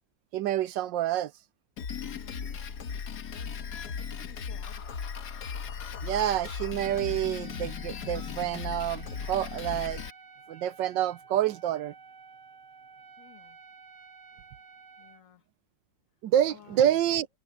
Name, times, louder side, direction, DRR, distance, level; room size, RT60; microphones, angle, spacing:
voice 1, 0.3-1.3 6.0-10.0 10.5-11.9 16.2-17.3, right 11 dB, 80° right, 1.4 m, -28 dB
Drum kit, 1.8-10.1, left 6 dB, 65° left, 1.8 m, -37 dB
voice 2, 2.1-2.7 3.1-3.7 4.0-4.8 13.2-13.6 15.0-15.5 16.5-16.9, left 9 dB, 50° left, 1.6 m, -55 dB
Trumpet, 6.8-15.2, right 5 dB, 65° right, 1.6 m, -52 dB
omnidirectional pair, 2.0 m